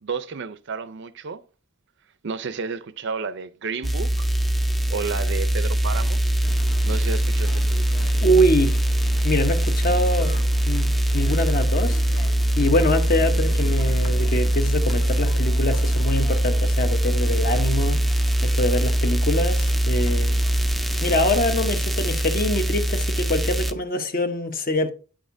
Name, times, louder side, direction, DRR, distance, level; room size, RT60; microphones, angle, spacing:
voice 1, 0.0-1.4 2.2-4.3 4.9-6.2 6.8-8.0, right 5 dB, 60° right, 0.5 m, -31 dB
sound 1, 3.8-23.7, right 1 dB, ahead, 0.3 m, -22 dB
sound 2, 6.4-21.6, left 1 dB, 80° left, 1.1 m, -41 dB
voice 2, 8.2-8.8 9.2-10.4 10.7-12.3 12.6-18.1 18.4-20.4 21.0-24.9, left 1 dB, 45° left, 0.8 m, -24 dB
9.2 x 6.4 x 2.6 m
head